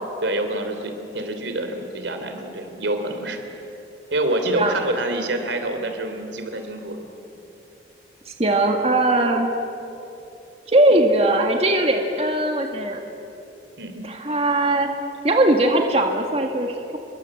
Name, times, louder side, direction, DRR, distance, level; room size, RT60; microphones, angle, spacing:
voice 1, 0.2-3.4 4.1-7.1 13.8-14.0, right 1 dB, 85° right, 6 dB, 3.2 m, -26 dB
voice 2, 8.3-9.5 10.7-13.0 14.0-14.9 15.2-17.0, right 1 dB, 35° right, 3 dB, 1.8 m, -20 dB
28.0 x 22.5 x 7.8 m, 2.9 s
head